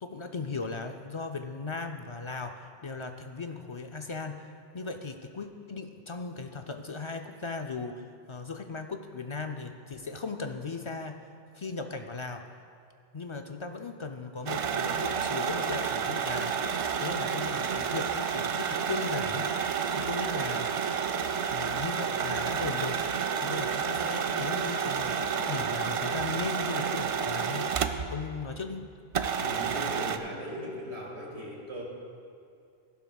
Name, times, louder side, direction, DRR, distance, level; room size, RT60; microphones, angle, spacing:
voice 1, 0.0-4.5 4.7-11.2 11.5-12.4 13.1-16.7 17.0-19.7 19.9-20.7 21.5-23.0 23.4-27.7 28.1-28.9, left 4 dB, 50° left, 5 dB, 0.3 m, -37 dB
sound 1, 14.5-28.2 28.5-28.6 29.1-30.2, right 6 dB, 60° right, 0.3 m, -30 dB
voice 2, 29.4-31.8, equal, 90° right, -3 dB, 2.4 m, -38 dB
15.5 x 11.5 x 2.3 m, 2.3 s
omnidirectional pair, 1.1 m